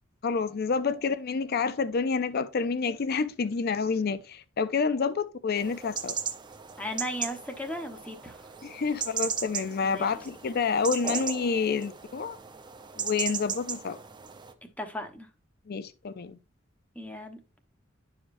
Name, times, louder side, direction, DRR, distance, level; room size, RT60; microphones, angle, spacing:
voice 1, 0.2-6.2 8.6-12.4 13.0-14.0 15.7-16.4, left 5 dB, 55° left, 0.5 m, -28 dB
sound 1, 5.6-14.5, right 6 dB, 25° right, 0.7 m, -36 dB
voice 2, 6.8-8.5 9.8-10.3 14.8-15.3 16.9-17.6, equal, 5° left, 1.0 m, -37 dB
10.5 x 5.0 x 2.6 m
head